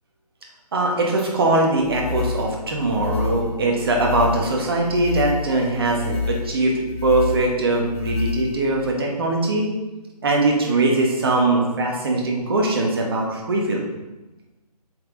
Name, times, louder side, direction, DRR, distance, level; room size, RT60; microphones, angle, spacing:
voice 1, 0.7-6.7 7.0-9.7 10.2-13.9, right 2 dB, 35° right, 0 dB, 1.4 m, -21 dB
sound 1, 1.8-8.9, left 5 dB, 40° left, 1.3 m, -29 dB
7.7 x 5.9 x 3.7 m, 1.1 s
figure-of-eight pair, 145°, 21 cm